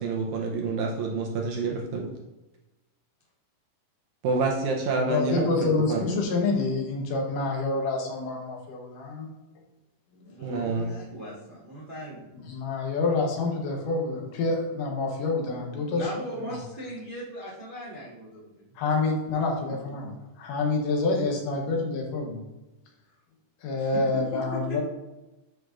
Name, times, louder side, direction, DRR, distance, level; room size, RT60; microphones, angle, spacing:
voice 1, 0.0-2.1 4.2-6.0 10.4-10.9, right 4 dB, 75° right, 1 dB, 1.9 m, -28 dB
voice 2, 4.9-9.3 10.1-10.2 12.5-16.1 18.8-20.1 20.4-22.4 23.6-24.8, left 3 dB, 75° left, 1 dB, 2.7 m, -27 dB
voice 3, 10.3-12.3 15.9-18.7 23.8-24.0 24.3-24.8, equal, 50° right, -7 dB, 0.6 m, -38 dB
9.4 x 5.2 x 2.5 m, 1.0 s
omnidirectional pair, 3.9 m